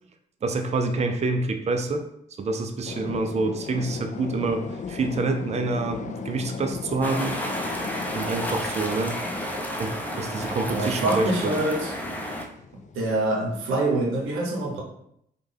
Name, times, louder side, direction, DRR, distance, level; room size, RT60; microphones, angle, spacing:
voice 1, 0.4-2.1 2.4-7.4 8.1-9.2 9.7-11.5, right 3 dB, 35° right, 5 dB, 0.4 m, -27 dB
sound 1, 2.8-14.2, left 5 dB, 40° left, 0.4 m, -38 dB
sound 2, 7.0-12.4, equal, 10° left, 0.7 m, -31 dB
voice 2, 10.4-11.9 12.9-14.8, right 2 dB, 85° right, -1 dB, 0.7 m, -25 dB
3.2 x 2.2 x 3.3 m, 0.73 s
supercardioid pair, 45°, 20 cm